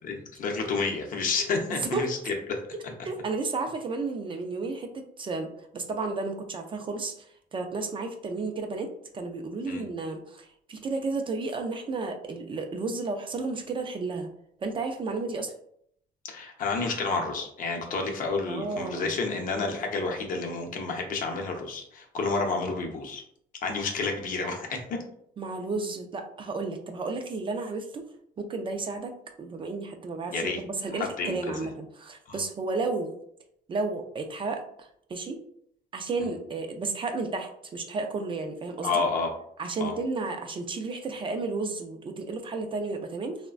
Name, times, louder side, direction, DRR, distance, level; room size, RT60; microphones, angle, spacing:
voice 1, 0.0-2.9 9.7-9.8 16.2-23.2 23.6-25.0 30.3-30.6 30.9-31.7 32.3-32.4 36.2-36.3 38.8-39.3 39.8-39.9, left 4 dB, 55° left, 3 dB, 0.6 m, -30 dB
voice 2, 1.7-2.1 3.0-5.5 5.7-7.3 7.5-8.9 9.1-14.3 14.6-15.5 18.5-19.1 25.4-28.0 28.4-33.1 33.7-35.4 35.9-39.0 39.6-43.4, right 3 dB, 30° right, 4 dB, 0.3 m, -32 dB
3.1 x 2.1 x 2.4 m, 0.69 s
cardioid pair, 110°, 17 cm